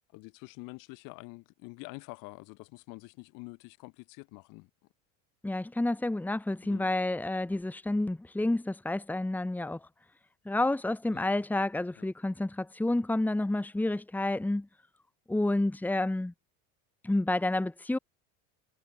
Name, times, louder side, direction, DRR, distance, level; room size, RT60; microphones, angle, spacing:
voice 1, 0.1-4.7 6.6-6.9 11.1-11.3 12.0-12.1, left 27 dB, 60° left, 7.0 m, -47 dB
voice 2, 5.4-9.9 10.5-14.7 15.3-16.3 17.0-18.0, left 2 dB, 5° left, 2.4 m, -29 dB
supercardioid pair, 135°, 35 cm